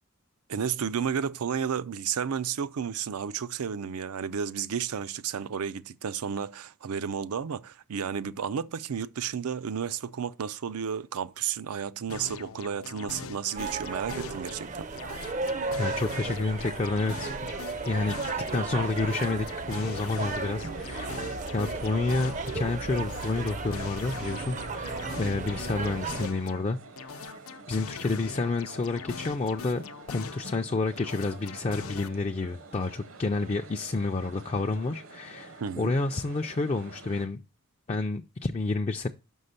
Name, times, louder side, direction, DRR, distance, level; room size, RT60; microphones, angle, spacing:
voice 1, 0.5-14.9 35.6-35.9, right 7 dB, 85° right, 0.5 m, -32 dB
sound 1, 12.1-14.6 15.0-18.6 19.0-22.6 23.0-26.6 27.0-30.6 31.0-32.1, left 6 dB, 75° left, 0.6 m, -42 dB
sound 2, 13.5-26.3, right 4 dB, 35° right, 0.5 m, -35 dB
voice 2, 15.8-17.5 17.9-18.2 18.5-27.3 27.7-37.4 37.9-39.1, left 3 dB, 30° left, 0.4 m, -30 dB
sound 3, 17.8-37.3, right 3 dB, 60° right, 0.8 m, -48 dB
6.1 x 5.5 x 6.5 m
head